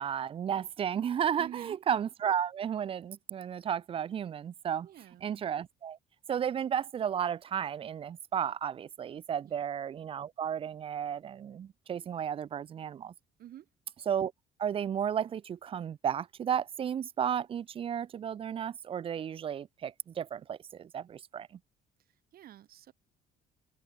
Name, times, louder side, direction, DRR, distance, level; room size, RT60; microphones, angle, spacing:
voice 1, 0.0-4.9 5.2-6.0 6.3-13.1 14.1-14.3 14.6-21.5, right 8 dB, 35° right, 0.4 m, -33 dB
voice 2, 1.4-1.8 4.8-5.3 9.4-9.6 13.4-13.7 22.0-22.9, right 12 dB, 60° right, 2.5 m, -48 dB
cardioid pair, 110°, 17 cm